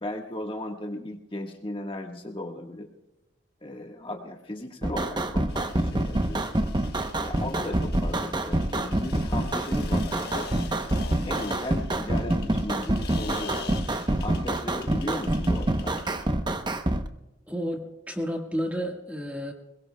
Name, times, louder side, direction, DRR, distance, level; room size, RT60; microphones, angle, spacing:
voice 1, 0.0-2.9 3.6-6.7 7.2-10.5 11.2-13.7 14.1-16.0, left 1 dB, 30° left, 2 dB, 1.4 m, -36 dB
sound 1, 4.8-17.0, right 1 dB, 25° right, 0.8 m, -26 dB
sound 2, 5.5-16.3, left 5 dB, 55° left, 1.3 m, -44 dB
voice 2, 17.5-19.5, equal, 10° right, 2 dB, 1.6 m, -31 dB
22.5 x 21.5 x 2.3 m, 0.97 s
head